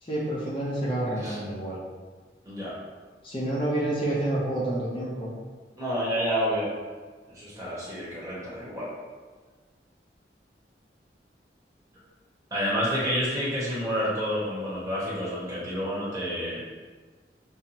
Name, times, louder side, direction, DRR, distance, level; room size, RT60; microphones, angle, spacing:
voice 1, 0.0-1.8 3.2-5.3, right 1 dB, 30° left, -7 dB, 0.7 m, -28 dB
voice 2, 2.4-2.8 5.8-6.7 7.3-8.9 12.5-16.6, equal, 20° right, -8 dB, 1.1 m, -29 dB
5.5 x 2.1 x 2.9 m, 1.4 s
head